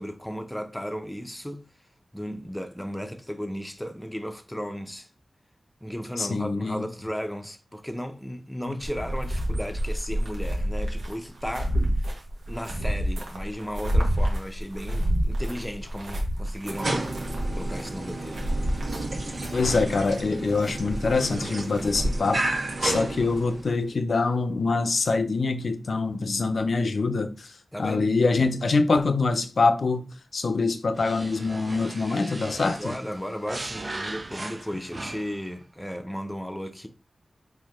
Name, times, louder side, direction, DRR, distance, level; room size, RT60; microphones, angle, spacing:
voice 1, 0.0-1.7 2.1-5.1 5.8-11.8 12.5-17.3 17.5-18.4 27.7-28.1 32.8-36.9, equal, 5° left, 0.7 m, -35 dB
voice 2, 6.2-6.9 19.5-22.5 22.8-27.5 27.8-33.0, left 3 dB, 70° left, 0.5 m, -24 dB
sound 1, 8.8-22.2, equal, 90° right, 1.1 m, -28 dB
sound 2, 16.6-23.8, right 2 dB, 70° right, 1.4 m, -32 dB
sound 3, 30.9-35.5, right 2 dB, 40° right, 0.5 m, -38 dB
4.3 x 2.8 x 3.6 m
cardioid pair, 55°, 0 cm